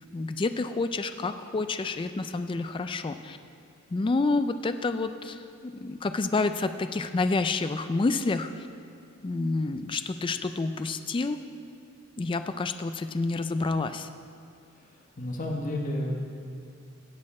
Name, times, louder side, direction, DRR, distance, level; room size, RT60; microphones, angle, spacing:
voice 1, 0.1-3.4 3.9-8.7 9.2-11.4 12.2-14.1, left 3 dB, 25° left, 9 dB, 0.3 m, -29 dB
voice 2, 14.7-16.1, left 1 dB, 40° left, 1 dB, 1.3 m, -32 dB
16.0 x 8.6 x 4.3 m, 2.4 s
head